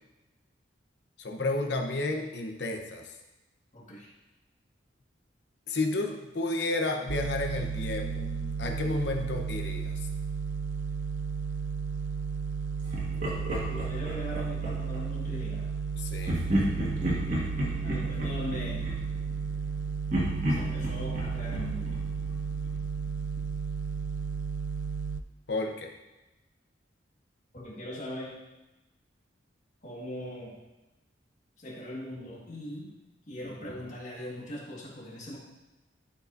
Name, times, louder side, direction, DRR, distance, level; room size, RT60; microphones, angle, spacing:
voice 1, 1.2-3.1 5.7-10.1 16.0-16.4 25.5-25.9, left 2 dB, 60° left, 3 dB, 0.8 m, -32 dB
voice 2, 3.7-4.1 13.7-15.7 17.8-18.9 20.5-22.0 27.5-28.4 29.8-30.6 31.6-32.9 33.3-35.4, left 1 dB, 40° left, -4 dB, 1.7 m, -40 dB
sound 1, 7.1-25.2, right 5 dB, 75° right, 0.4 m, -33 dB
Laughter, 12.9-15.0 16.2-19.7 20.1-22.9, equal, 45° right, 1.7 m, -32 dB
11.5 x 5.1 x 2.6 m, 1.0 s
head